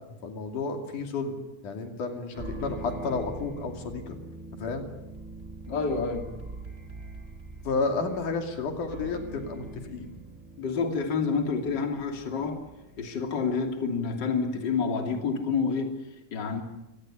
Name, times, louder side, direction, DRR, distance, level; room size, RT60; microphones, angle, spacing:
voice 1, 0.2-1.4 1.6-4.2 4.6-4.9 7.7-10.1, left 4 dB, 80° left, 4 dB, 4.1 m, -31 dB
sound 1, 2.3-13.7, right 2 dB, 20° right, 3.4 m, -43 dB
voice 2, 5.7-6.3 10.6-12.6 13.0-15.9 16.3-16.6, left 5 dB, 35° left, 3 dB, 3.2 m, -28 dB
26.0 x 18.0 x 10.0 m, 1.0 s
omnidirectional pair, 3.6 m